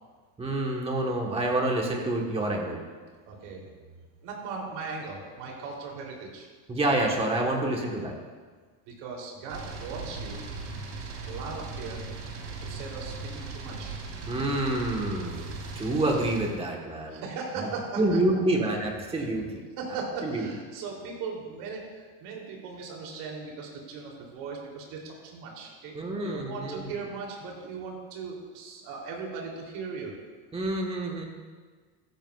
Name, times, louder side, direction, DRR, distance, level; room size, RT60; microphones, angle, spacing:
voice 1, 0.4-2.8 6.7-8.1 14.3-17.2 18.0-19.6 20.2-20.5 25.9-26.9 30.5-31.2, right 1 dB, 10° right, 0 dB, 1.3 m, -28 dB
voice 2, 3.3-3.6 4.2-6.5 8.9-10.4 11.2-12.1 12.6-14.0 17.1-18.2 19.8-25.9 26.2-30.2, right 4 dB, 55° right, -1 dB, 3.3 m, -38 dB
sound 1, 9.5-16.5, right 4 dB, 90° right, 3.6 m, -38 dB
15.0 x 13.5 x 2.4 m, 1.5 s
cardioid pair, 165°, 47 cm